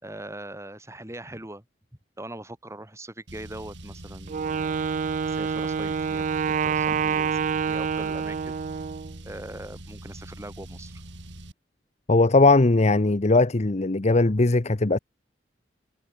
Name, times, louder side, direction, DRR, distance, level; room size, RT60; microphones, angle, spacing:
voice 1, 0.0-1.6 2.2-4.9 5.2-8.5 9.2-10.9, right 1 dB, 15° right, 7.1 m, -41 dB
Car, 3.3-11.5, right 1 dB, 80° right, 3.7 m, -43 dB
Wind instrument woodwind instrument, 4.3-9.1, right 6 dB, 45° right, 0.3 m, -27 dB
voice 2, 12.1-15.0, left 2 dB, 40° left, 0.8 m, -19 dB
head